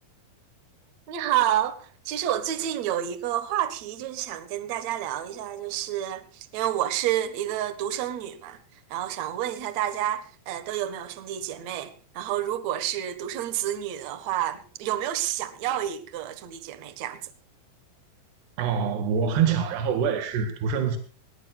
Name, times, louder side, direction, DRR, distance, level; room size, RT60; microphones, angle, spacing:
voice 1, 1.1-8.6 8.9-17.2, right 11 dB, 55° right, 2.2 m, -29 dB
voice 2, 18.6-21.0, right 7 dB, 80° right, 3.9 m, -25 dB
20.5 x 20.0 x 2.4 m
omnidirectional pair, 4.6 m